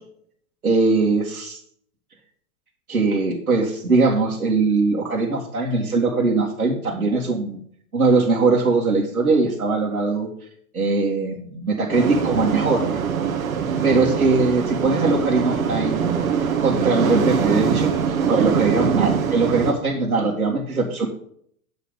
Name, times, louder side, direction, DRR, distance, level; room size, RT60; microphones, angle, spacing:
voice 1, 0.6-1.6 2.9-7.6 7.9-10.3 10.7-13.0 13.8-16.1 16.6-18.0 18.3-21.1, right 3 dB, 90° right, -5 dB, 2.5 m, -21 dB
sound 1, 11.9-19.7, right 7 dB, 70° right, 1.8 m, -23 dB
9.6 x 7.0 x 5.2 m, 0.63 s
figure-of-eight pair, 95°, 42 cm